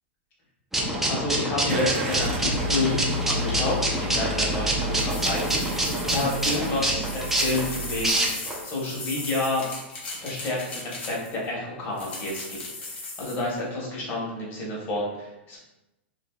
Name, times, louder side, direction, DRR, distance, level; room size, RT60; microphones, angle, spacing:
sound 1, 0.7-8.6, right 1 dB, 5° right, 0.5 m, -26 dB
voice 1, 1.1-9.6 10.1-15.6, left 2 dB, 35° left, -4 dB, 1.1 m, -30 dB
Car / Engine starting, 1.7-8.1, equal, 85° right, 0.5 m, -32 dB
sound 2, 4.9-11.5 12.0-13.5, left 3 dB, 80° left, 0.8 m, -38 dB
2.7 x 2.7 x 2.3 m, 0.96 s
hypercardioid pair, 125°, 6 cm